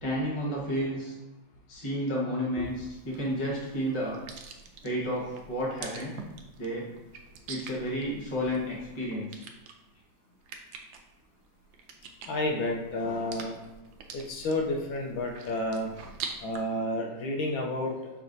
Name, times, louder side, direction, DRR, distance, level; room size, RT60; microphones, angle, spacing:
voice 1, 0.0-1.1 1.7-4.2 4.8-6.1 6.6-6.9 7.5-9.4, equal, 25° left, -5 dB, 0.7 m, -31 dB
sound 1, 2.6-16.6, right 5 dB, 75° right, 1.2 m, -46 dB
voice 2, 12.3-13.6 14.1-15.9 16.4-17.9, left 1 dB, 75° left, 1 dB, 1.4 m, -30 dB
5.9 x 3.3 x 2.6 m, 1.0 s
omnidirectional pair, 2.2 m